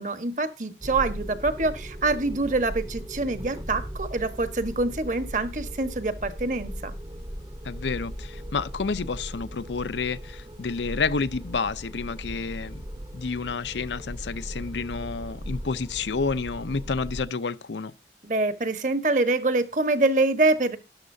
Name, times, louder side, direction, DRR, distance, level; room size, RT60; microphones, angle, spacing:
voice 1, 0.0-6.9 18.2-20.8, right 2 dB, 45° right, 1.3 m, -25 dB
sound 1, 0.8-17.2, equal, 25° right, 0.8 m, -38 dB
voice 2, 7.6-12.8 13.1-17.9, left 4 dB, 85° left, 0.6 m, -30 dB
13.0 x 11.5 x 2.7 m
head